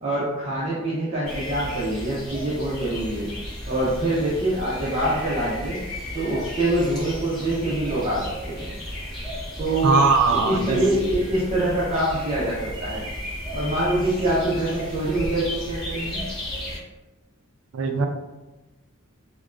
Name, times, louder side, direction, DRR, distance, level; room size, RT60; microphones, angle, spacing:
voice 1, 0.0-3.3 3.7-5.8 6.1-8.7 9.6-10.0 10.3-13.0 13.5-16.2, right 1 dB, 30° right, -9 dB, 0.6 m, -25 dB
sound 1, 1.2-16.8, equal, 5° left, 1.1 m, -34 dB
voice 2, 9.8-10.8 17.7-18.1, right 4 dB, 75° right, 5 dB, 0.4 m, -20 dB
3.4 x 2.2 x 2.4 m, 1.1 s
head